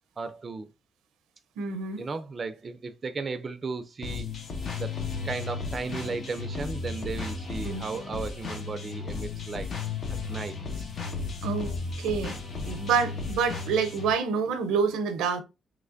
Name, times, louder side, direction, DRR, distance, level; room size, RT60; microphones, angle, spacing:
voice 1, 0.2-0.7 2.0-4.3 4.8-9.7 10.3-10.9, right 4 dB, 35° right, 0.4 m, -35 dB
voice 2, 1.6-2.0 7.6-7.8 11.4-12.4 12.7-15.4, right 5 dB, 90° right, 0.6 m, -27 dB
sound 1, 4.0-14.1, left 4 dB, 55° left, 0.9 m, -34 dB
3.2 x 3.2 x 2.5 m
cardioid pair, 90°, 0 cm